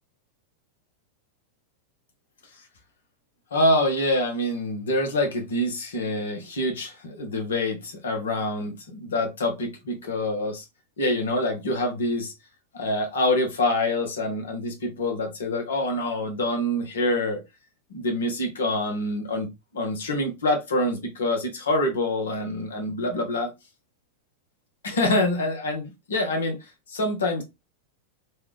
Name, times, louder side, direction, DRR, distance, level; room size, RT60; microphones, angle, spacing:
voice 1, 3.5-10.6 11.0-12.3 12.7-17.4 17.9-19.5 19.7-23.5 24.8-26.6 26.9-27.4, left 1 dB, 65° left, 1.0 m, -26 dB
3.3 x 2.4 x 3.2 m
figure-of-eight pair, 90°, 0 cm